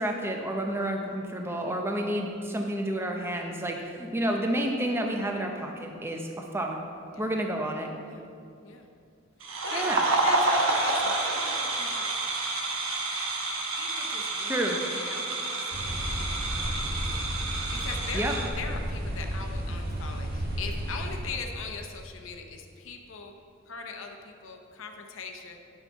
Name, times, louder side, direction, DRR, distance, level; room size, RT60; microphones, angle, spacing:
voice 1, 0.0-6.2 6.5-6.8 7.2-7.9 9.7-10.0 14.4-14.8 18.1-18.3, right 1 dB, 10° right, 2 dB, 0.6 m, -30 dB
voice 2, 3.6-4.0 7.1-7.3 8.0-8.2 8.6-8.9 9.6-12.2 13.7-14.6 14.9-23.3 23.7-25.6, left 4 dB, 70° left, 3 dB, 0.7 m, -41 dB
sound 1, 9.4-18.5, right 2 dB, 75° right, 1.1 m, -29 dB
sound 2, 15.7-21.2, equal, 45° right, 1.2 m, -33 dB
9.6 x 5.7 x 4.5 m, 2.4 s
head